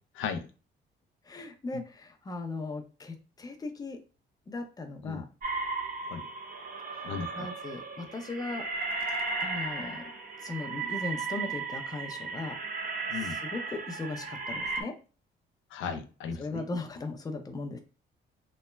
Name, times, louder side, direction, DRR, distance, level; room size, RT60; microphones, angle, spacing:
voice 1, 0.1-0.5 1.7-1.8 5.0-5.2 6.1-6.3 7.0-7.5 13.1-13.4 15.7-16.6, left 6 dB, 80° left, 7 dB, 0.4 m, -36 dB
voice 2, 1.3-4.0 4.5-5.2 7.3-8.7 9.4-10.0 10.4-12.6 13.1-14.9 15.9-16.0 16.4-17.8, left 3 dB, 20° left, 5 dB, 0.5 m, -38 dB
sound 1, 5.4-14.8, right 4 dB, 45° right, 0.7 m, -35 dB
3.0 x 2.1 x 2.2 m, 0.35 s
cardioid pair, 90°, 20 cm